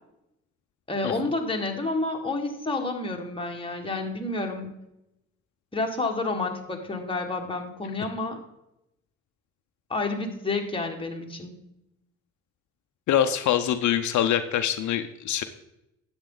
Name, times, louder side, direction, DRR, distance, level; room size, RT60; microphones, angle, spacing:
voice 1, 0.9-4.8 5.7-8.4 9.9-11.5, left 3 dB, 15° left, 2 dB, 1.7 m, -29 dB
voice 2, 13.1-15.4, left 10 dB, 70° left, 9 dB, 0.7 m, -24 dB
10.0 x 8.1 x 3.9 m, 0.86 s
cardioid pair, 90°, 30 cm